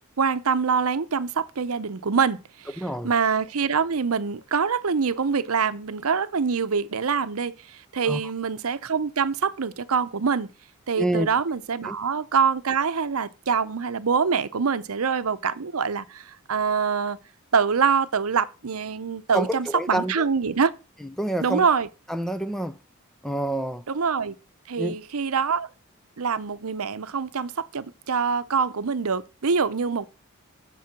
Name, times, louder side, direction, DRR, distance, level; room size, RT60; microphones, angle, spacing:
voice 1, 0.2-2.7 3.0-10.5 10.9-17.2 17.5-20.7 21.4-21.9 23.9-24.4 24.7-25.7 26.2-30.1, right 6 dB, 80° right, 0.7 m, -25 dB
voice 2, 2.8-3.1 8.0-8.2 11.0-11.3 11.9-12.0 19.3-20.3 21.0-21.7 22.1-22.8 23.2-23.8 24.8-25.0, right 1 dB, ahead, 0.4 m, -27 dB
7.5 x 7.0 x 5.8 m
head